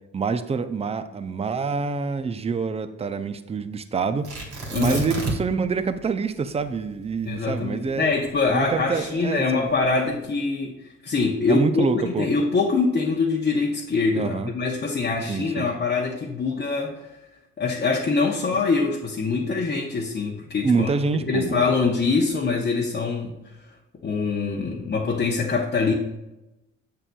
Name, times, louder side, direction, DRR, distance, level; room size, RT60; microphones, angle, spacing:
voice 1, 0.1-4.3 4.7-8.1 8.5-9.7 11.5-12.3 14.1-14.5 15.3-15.7 20.6-21.7, right 5 dB, 20° right, 11 dB, 0.4 m, -26 dB
Tearing, 4.2-5.6 5.9-6.0 6.6-8.9 9.6-10.1, right 2 dB, 65° right, 2.3 m, -32 dB
voice 2, 4.7-5.0 7.3-17.1 17.6-20.9 21.3-23.4 24.0-25.9, left 4 dB, 35° left, -1 dB, 0.8 m, -24 dB
7.3 x 6.7 x 2.3 m, 0.96 s
cardioid pair, 90°, 30 cm